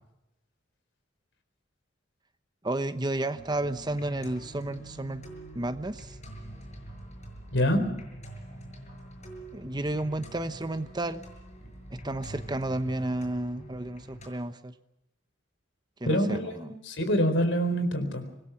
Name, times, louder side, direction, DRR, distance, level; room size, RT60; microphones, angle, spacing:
voice 1, 2.6-5.2 5.5-6.2 9.5-11.2 11.9-14.7 16.0-16.7, right 1 dB, 20° right, 10 dB, 0.9 m, -32 dB
sound 1, 3.4-14.3, right 1 dB, 35° left, 6.4 m, -45 dB
voice 2, 7.5-7.9 16.1-18.3, equal, 70° left, 8 dB, 4.3 m, -26 dB
25.5 x 20.0 x 5.9 m, 0.91 s
head